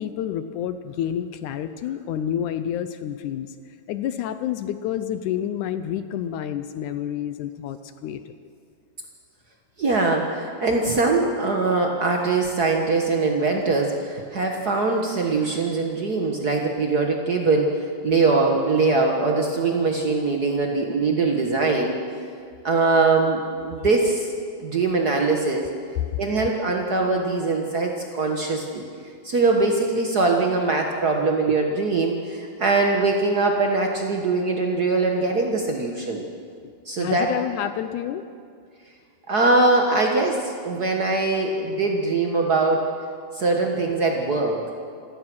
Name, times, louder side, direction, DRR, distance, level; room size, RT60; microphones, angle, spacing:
voice 1, 0.0-3.6 3.9-8.3 36.6-36.7 37.0-38.2, left 10 dB, 75° left, 11 dB, 1.9 m, -29 dB
voice 2, 9.8-21.9 22.6-24.3 24.6-25.7 26.2-28.8 29.2-36.2 36.8-37.3 39.3-42.9 43.3-44.6, right 3 dB, 85° right, 1 dB, 0.8 m, -22 dB
27.0 x 16.5 x 6.2 m, 2.3 s
omnidirectional pair, 4.0 m